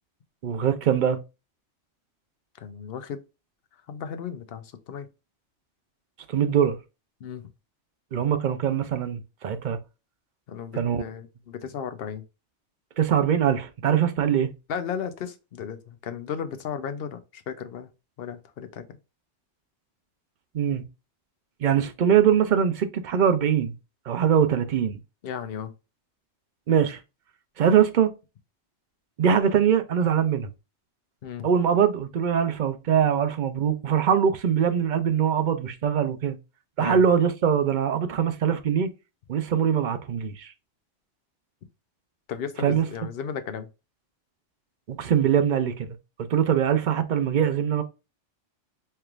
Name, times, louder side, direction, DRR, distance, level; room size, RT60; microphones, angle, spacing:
voice 1, 0.4-1.2 6.3-6.8 8.1-9.8 10.7-11.0 13.0-14.5 20.5-20.8 21.6-23.7 24.1-25.0 26.7-27.0 27.6-28.1 29.2-30.5 31.4-36.4 36.8-38.9 39.3-40.5 42.6-42.9 44.9-47.8, right 8 dB, 55° right, 0.6 m, -22 dB
voice 2, 2.6-3.2 3.9-5.1 7.2-7.5 10.5-12.2 14.7-17.9 18.2-19.0 25.2-25.7 31.2-31.5 36.8-37.0 42.3-43.7, left 7 dB, 60° left, 0.8 m, -35 dB
4.4 x 3.3 x 2.4 m
omnidirectional pair, 1.2 m